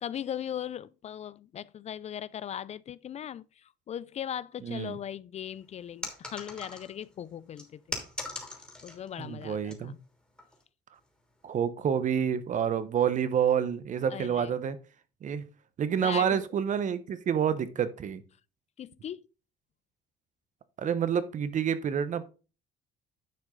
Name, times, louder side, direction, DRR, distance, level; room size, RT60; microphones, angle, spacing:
voice 1, 0.0-7.8 8.8-10.0 14.1-14.5 16.0-16.5 18.8-19.2, left 9 dB, 40° left, 0.4 m, -38 dB
voice 2, 4.6-5.0 9.2-9.9 11.4-14.8 15.2-15.4 15.8-18.2 20.8-22.3, right 8 dB, 50° right, 1.1 m, -28 dB
sound 1, 6.0-7.1 7.6-9.1 9.4-9.8 10.4-10.6, left 2 dB, 5° left, 3.0 m, -39 dB
10.5 x 6.0 x 3.9 m
cardioid pair, 110°, 17 cm